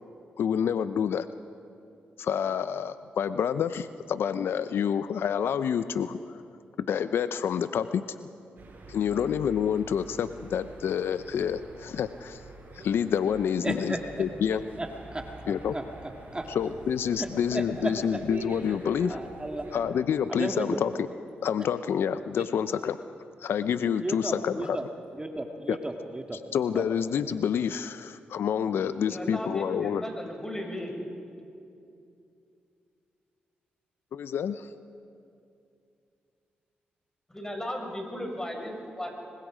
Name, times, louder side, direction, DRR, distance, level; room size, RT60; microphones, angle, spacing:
voice 1, 0.4-1.3 2.2-6.2 6.9-8.0 8.9-12.4 12.7-14.6 15.5-15.7 16.5-19.2 19.7-20.9 21.4-23.0 23.4-24.8 25.7-25.8 26.5-30.0 34.1-34.7, left 8 dB, 75° left, 12 dB, 0.6 m, -28 dB
sound 1, 8.6-19.8, right 3 dB, 55° right, 7.0 m, -45 dB
voice 2, 13.6-14.0 14.8-16.5 17.2-18.2 18.7-18.8 19.1-19.6 20.4-20.8 24.0-24.9 25.2-26.4 26.7-26.9, right 1 dB, 25° right, 3 dB, 1.9 m, -34 dB
voice 3, 28.8-30.9 37.3-39.1, equal, 15° left, 1 dB, 6.4 m, -36 dB
25.5 x 23.0 x 5.0 m, 2.6 s
supercardioid pair, 50°, 4 cm